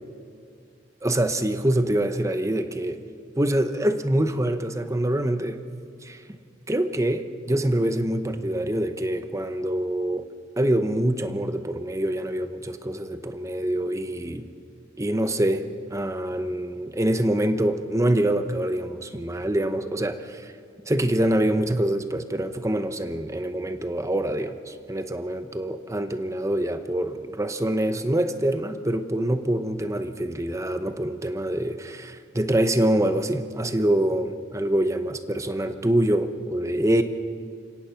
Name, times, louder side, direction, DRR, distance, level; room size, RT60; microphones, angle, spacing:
voice 1, 1.0-3.0 3.4-5.6 6.0-6.4 6.7-10.3 10.6-14.5 15.0-15.6 15.9-20.5 20.9-37.0, right 1 dB, 15° right, 9 dB, 0.9 m, -25 dB
29.0 x 17.0 x 5.9 m, 2.4 s
head